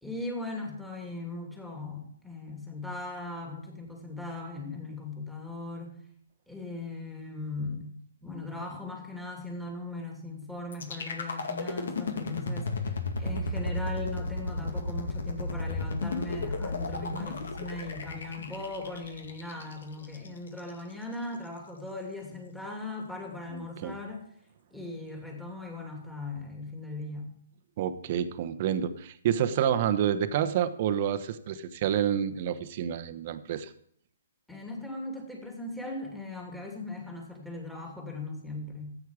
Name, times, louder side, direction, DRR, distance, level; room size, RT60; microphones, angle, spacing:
voice 1, 0.0-6.0 6.5-8.0 8.2-24.2 24.7-27.3 34.5-39.0, left 2 dB, 5° left, 0 dB, 2.7 m, -39 dB
sound 1, 10.7-20.7, left 2 dB, 70° left, 2.1 m, -33 dB
voice 2, 23.5-23.9 27.8-33.7, right 9 dB, 45° right, 11 dB, 1.0 m, -28 dB
14.0 x 8.9 x 4.9 m, 0.67 s
hypercardioid pair, 135°, 0 cm